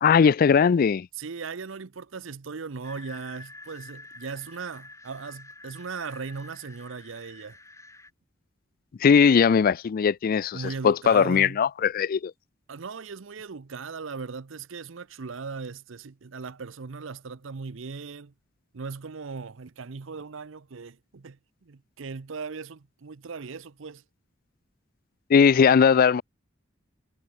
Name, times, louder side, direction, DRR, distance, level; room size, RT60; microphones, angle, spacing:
voice 1, 0.0-1.1 9.0-12.3 25.3-26.2, left 6 dB, 45° left, 0.3 m, -19 dB
voice 2, 1.1-7.6 10.5-11.6 12.7-18.3 18.7-24.0, right 5 dB, 75° right, 0.7 m, -38 dB
sound 1, 2.8-8.1, left 2 dB, 15° left, 3.0 m, -48 dB
head